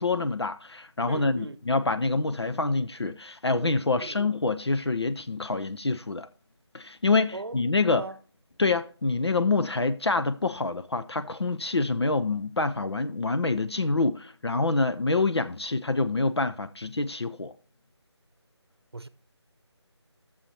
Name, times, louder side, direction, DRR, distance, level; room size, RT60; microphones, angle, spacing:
voice 1, 0.0-6.3 6.7-8.0 8.6-17.5, left 3 dB, 65° left, 0.5 m, -26 dB
voice 2, 1.1-1.6 3.9-4.2 7.3-8.2 18.9-19.1, right 2 dB, 60° right, 0.8 m, -39 dB
13.5 x 7.1 x 2.9 m
figure-of-eight pair, 165°, 15 cm